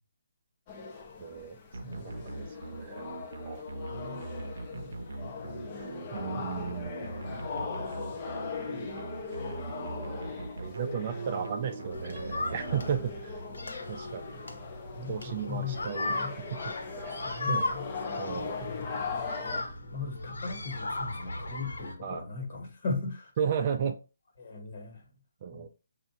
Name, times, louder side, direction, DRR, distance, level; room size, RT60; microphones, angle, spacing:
sound 1, 0.7-19.6, left 4 dB, 25° left, 0.5 m, -40 dB
voice 1, 1.2-1.6 1.9-2.5 2.8-3.1 3.4-3.6 6.1-7.0 8.1-8.7 10.0-13.4 13.9-14.4 15.1-16.6 17.0-17.2 17.5-17.6 18.2-18.7 22.0-22.3 23.4-24.0 25.4-25.7, right 8 dB, 30° right, 0.4 m, -35 dB
sound 2, 1.7-13.6, right 3 dB, 75° right, 0.6 m, -41 dB
voice 2, 1.8-2.2 3.9-4.2 4.7-5.8 6.3-7.8 8.8-9.0 14.9-15.8 16.2-16.5 17.0-17.9 18.6-19.0 19.9-23.3 24.4-25.0 25.5-25.7, left 4 dB, 40° left, 1.4 m, -39 dB
sound 3, 11.9-21.9, left 2 dB, 85° left, 1.2 m, -37 dB
5.5 x 2.5 x 2.8 m
hypercardioid pair, 170°, 0 cm